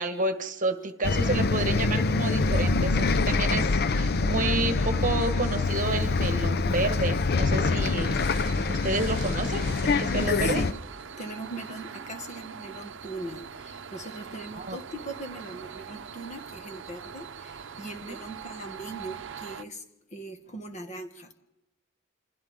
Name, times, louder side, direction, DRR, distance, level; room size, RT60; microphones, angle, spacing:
voice 1, 0.0-10.6 14.5-14.8 18.0-18.2, right 2 dB, 40° right, 8 dB, 1.5 m, -30 dB
Bus, 1.0-10.7, left 3 dB, 50° left, 0.6 m, -25 dB
sound 1, 7.8-19.6, right 7 dB, 65° right, 0.7 m, -42 dB
voice 2, 10.3-10.7 11.2-19.8 20.1-21.3, right 1 dB, 35° left, 6 dB, 1.7 m, -40 dB
28.0 x 27.0 x 3.7 m, 0.97 s
head